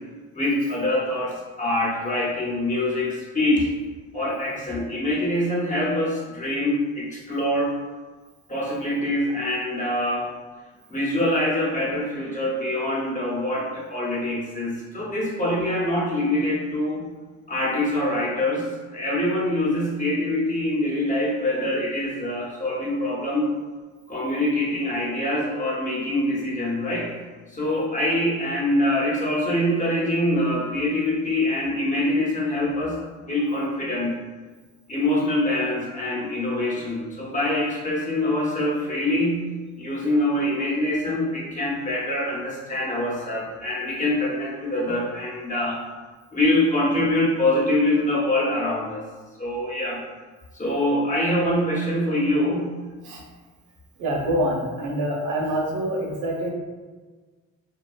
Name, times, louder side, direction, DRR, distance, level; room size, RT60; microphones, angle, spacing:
voice 1, 0.3-3.7 4.1-7.7 8.5-10.3 10.9-17.1 17.5-23.5 24.1-27.1 27.5-33.0 33.3-34.1 34.9-39.5 39.8-45.8 46.3-49.0 49.4-50.0 50.5-52.7, left 1 dB, 25° left, -5 dB, 0.8 m, -24 dB
voice 2, 54.0-56.5, right 1 dB, 90° right, -1 dB, 0.7 m, -26 dB
2.7 x 2.3 x 2.3 m, 1.4 s
cardioid pair, 90°, 30 cm